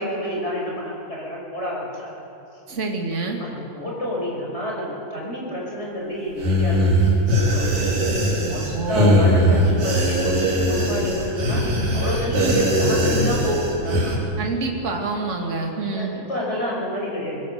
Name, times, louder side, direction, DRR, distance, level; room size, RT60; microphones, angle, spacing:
voice 1, 0.0-2.2 2.5-2.6 3.4-7.8 8.4-11.7 11.9-14.2 15.9-17.4, equal, 15° left, -3 dB, 5.9 m, -29 dB
voice 2, 2.7-3.4 8.6-9.2 12.4-12.6 14.4-16.1, right 3 dB, 25° right, 0 dB, 2.4 m, -27 dB
sound 1, 6.4-14.1, equal, 70° right, 5.5 m, -20 dB
25.0 x 20.0 x 6.9 m, 2.8 s
omnidirectional pair, 4.0 m